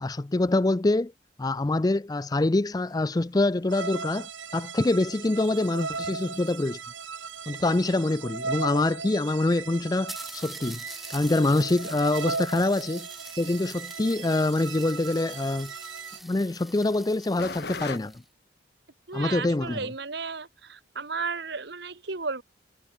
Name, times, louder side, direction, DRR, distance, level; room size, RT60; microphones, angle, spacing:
voice 1, 0.0-1.1 1.4-6.8 7.5-10.8 11.1-13.1 13.4-15.7 16.2-18.1 19.1-19.9, left 2 dB, 20° left, 0.4 m, -25 dB
sound 1, 2.8-18.0, left 4 dB, 55° left, 2.7 m, -49 dB
sound 2, 3.7-16.2, right 5 dB, 80° right, 6.0 m, -37 dB
sound 3, 5.1-7.9 8.8-8.9 9.1-9.2 9.5-9.6 10.1-18.3, equal, ahead, 3.6 m, -46 dB
voice 2, 19.1-22.4, right 4 dB, 55° right, 1.4 m, -34 dB
head